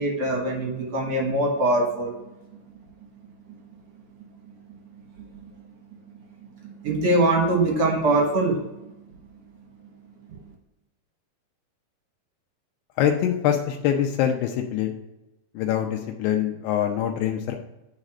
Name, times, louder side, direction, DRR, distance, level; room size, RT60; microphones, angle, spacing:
voice 1, 0.0-2.1 5.2-5.5 6.6-8.9, right 2 dB, 60° right, 0 dB, 1.7 m, -23 dB
voice 2, 13.0-14.9 15.6-17.6, left 10 dB, 85° left, 3 dB, 2.7 m, -24 dB
9.4 x 4.1 x 4.9 m, 0.94 s
omnidirectional pair, 4.6 m